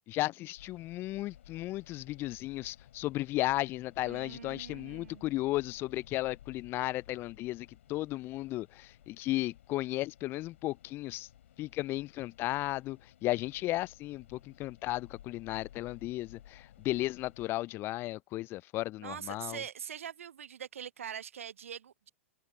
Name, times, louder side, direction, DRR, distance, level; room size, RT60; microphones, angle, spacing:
voice 1, 0.1-11.3 11.6-19.6, left 17 dB, 30° left, 0.3 m, -35 dB
sound 1, 0.6-17.5, left 11 dB, 65° left, 4.9 m, -57 dB
voice 2, 4.0-5.2 19.0-22.1, right 8 dB, 75° right, 0.4 m, -43 dB
figure-of-eight pair, 105°, 7 cm